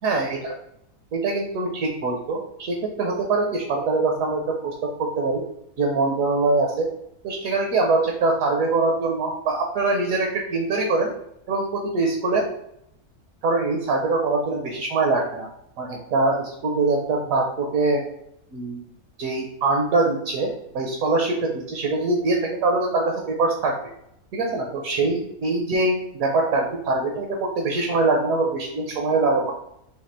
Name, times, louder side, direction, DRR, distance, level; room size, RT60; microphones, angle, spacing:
voice 1, 0.0-0.5 1.1-5.4 5.8-6.9 7.2-11.1 11.5-12.5 13.4-15.5 15.8-18.0 18.5-18.8 19.2-23.8 24.3-29.5, right 3 dB, 70° right, 2 dB, 1.1 m, -23 dB
4.2 x 2.8 x 4.2 m, 0.78 s
omnidirectional pair, 1.6 m